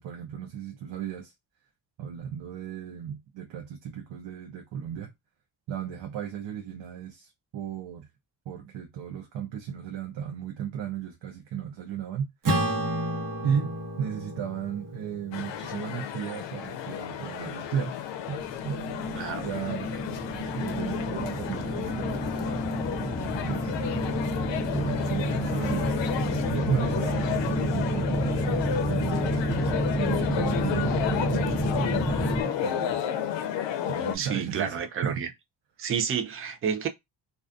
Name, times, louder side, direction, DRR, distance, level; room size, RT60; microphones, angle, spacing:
voice 1, 0.0-1.3 2.0-5.1 5.7-8.1 8.5-12.3 13.4-18.0 18.3-19.9 20.5-22.7 23.5-24.2 24.7-26.2 26.5-33.0 33.9-35.2, right 8 dB, 85° right, 0.7 m, -35 dB
Acoustic guitar / Strum, 12.4-17.2, right 1 dB, 50° right, 1.0 m, -32 dB
sound 1, 15.3-34.1, left 10 dB, 90° left, 0.5 m, -32 dB
sound 2, 18.4-32.4, right 1 dB, 10° left, 0.7 m, -29 dB
voice 2, 34.1-35.3 35.8-36.9, right 7 dB, 30° right, 0.4 m, -30 dB
2.4 x 2.3 x 2.4 m
cardioid pair, 100°, 43 cm